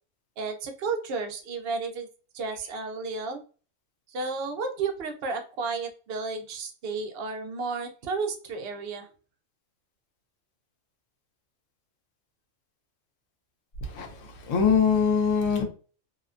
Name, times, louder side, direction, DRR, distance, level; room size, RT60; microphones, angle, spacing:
voice 1, 0.4-2.1 2.3-3.4 4.1-9.1, right 4 dB, 60° right, 0.7 m, -32 dB
voice 2, 13.8-15.6, left 6 dB, 70° left, 1.0 m, -23 dB
2.7 x 2.2 x 2.4 m
omnidirectional pair, 1.4 m